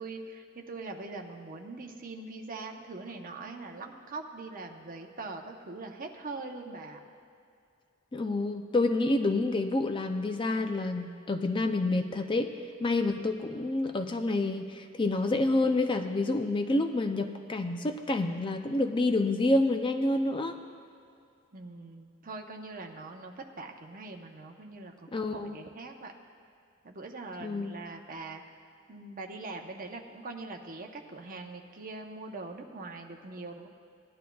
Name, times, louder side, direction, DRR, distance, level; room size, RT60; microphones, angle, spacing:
voice 1, 0.0-7.0 21.5-26.1 26.8-28.4 28.9-33.7, right 3 dB, 40° right, 3 dB, 0.8 m, -42 dB
voice 2, 8.1-12.5 12.8-20.6 25.1-25.6 27.4-27.8, left 2 dB, 25° left, 6 dB, 0.4 m, -28 dB
18.5 x 11.5 x 2.3 m, 2.4 s
head